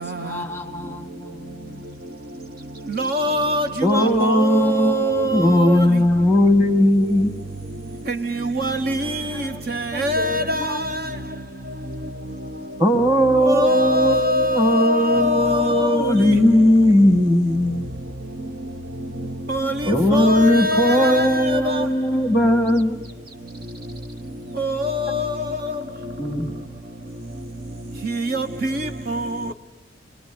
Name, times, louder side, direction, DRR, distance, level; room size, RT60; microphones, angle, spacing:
voice 1, 0.0-1.8 6.8-8.1 9.3-9.6 9.9-10.8 15.0-15.1 20.7-21.1 29.5-29.6, left 2 dB, 15° left, 1.3 m, -36 dB
voice 2, 2.9-5.9 8.1-9.2 9.9-10.7 13.4-16.2 19.5-21.8 24.6-25.3 28.0-28.8 29.1-29.2, left 1 dB, 50° right, 1.2 m, -23 dB
voice 3, 3.8-7.3 12.8-17.9 19.9-23.0 26.2-26.5, equal, 5° right, 2.4 m, -18 dB
26.0 x 21.5 x 8.8 m
head